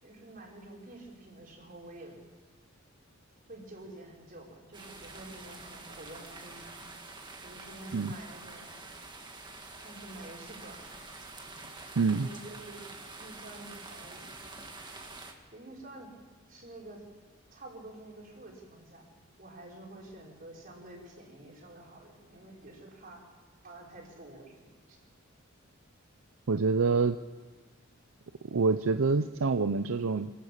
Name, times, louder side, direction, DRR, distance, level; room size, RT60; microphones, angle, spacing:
voice 1, 0.0-2.2 3.5-6.8 7.4-8.7 9.8-10.9 12.1-12.8 13.2-14.3 15.5-16.1 16.5-17.0 17.5-19.1 19.4-23.2 23.6-24.6 24.9-25.0, right 1 dB, 45° right, -2 dB, 5.3 m, -48 dB
sound 1, 4.7-15.3, right 3 dB, 20° right, 1.9 m, -47 dB
voice 2, 12.0-12.3 26.5-27.2 28.5-30.3, right 4 dB, 75° right, 10 dB, 0.6 m, -26 dB
26.0 x 13.0 x 8.7 m, 1.4 s
head